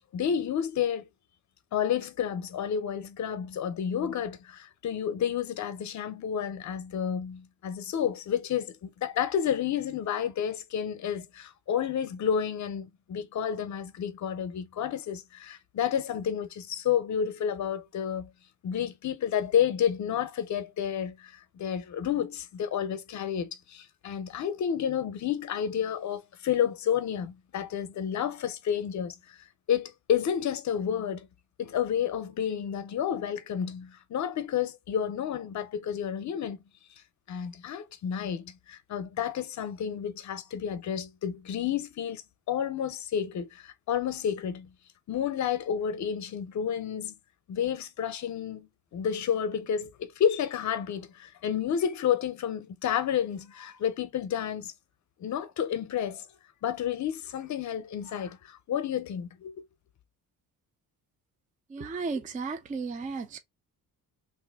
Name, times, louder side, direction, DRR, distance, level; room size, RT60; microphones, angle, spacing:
voice 1, 0.1-1.1 1.7-18.3 18.6-29.4 29.7-31.3 31.6-36.6 37.3-42.2 42.5-44.7 45.1-47.2 47.5-54.7 55.2-56.3 56.6-59.6, left 8 dB, 50° left, 0.6 m, -30 dB
voice 2, 61.7-63.4, right 4 dB, 20° right, 0.4 m, -34 dB
3.1 x 2.5 x 3.4 m
cardioid pair, 150°, 36 cm